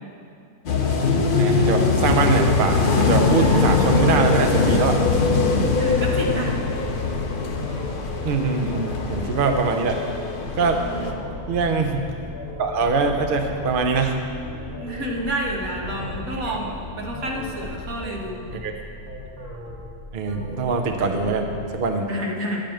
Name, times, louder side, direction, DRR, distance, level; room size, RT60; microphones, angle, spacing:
sound 1, 0.7-11.1, left 4 dB, 45° left, 0.8 m, -21 dB
voice 1, 1.4-5.0 6.1-6.4 8.2-10.0 10.6-10.8 11.5-12.0 12.6-14.2 16.5-16.6 18.6-18.8 20.1-22.1, right 4 dB, 50° right, 4 dB, 0.7 m, -23 dB
sound 2, 2.0-21.7, left 2 dB, 15° right, 1.6 m, -36 dB
voice 2, 3.4-3.8 5.8-6.6 10.8-11.2 14.8-18.4 21.0-21.3 22.0-22.6, right 1 dB, 65° right, -1 dB, 1.7 m, -30 dB
10.5 x 5.2 x 7.6 m, 2.4 s
omnidirectional pair, 1.6 m